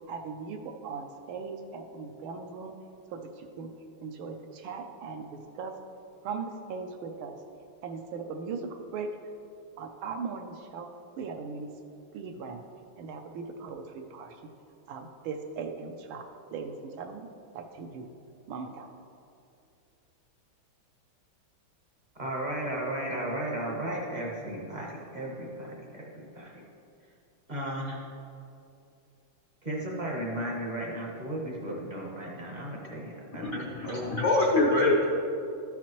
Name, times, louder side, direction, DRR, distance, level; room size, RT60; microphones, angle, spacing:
voice 1, 0.1-2.7 3.1-3.7 4.0-5.3 5.6-5.7 6.2-7.4 7.8-9.1 9.8-10.9 11.2-11.7 12.1-12.6 13.0-14.3 14.9-16.2 16.5-16.7 17.0-17.3 17.5-18.1 18.5-18.9, right 5 dB, 75° right, 4 dB, 1.4 m, -38 dB
voice 2, 22.2-26.5 27.5-28.0 29.6-34.1 34.7-35.0, right 1 dB, 35° right, -3 dB, 0.7 m, -35 dB
voice 3, 33.4-35.0, left 2 dB, 65° left, -2 dB, 0.8 m, -25 dB
13.0 x 5.8 x 3.0 m, 2.6 s
omnidirectional pair, 2.4 m